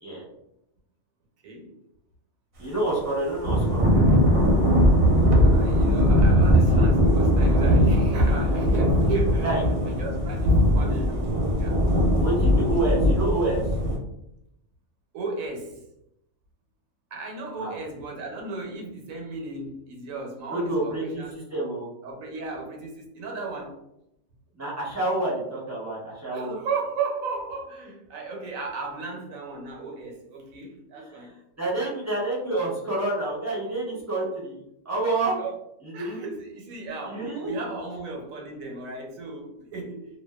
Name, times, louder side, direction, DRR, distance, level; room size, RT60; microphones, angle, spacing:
voice 1, 1.4-1.8 5.5-11.8 15.1-15.8 17.1-21.3 22.0-23.8 26.3-31.4 35.4-35.6 35.9-40.1, right 3 dB, 85° right, 1 dB, 1.1 m, -35 dB
voice 2, 2.6-3.9 9.4-9.6 12.1-13.6 17.6-17.7 20.5-21.9 24.5-26.6 30.9-31.3 31.6-34.6 34.8-35.4 35.8-36.3 37.1-37.5, right 2 dB, 20° right, -6 dB, 0.4 m, -28 dB
Thunder / Rain, 3.4-14.0, equal, 55° right, 0.7 m, -20 dB
2.5 x 2.2 x 2.2 m, 0.81 s
omnidirectional pair, 1.4 m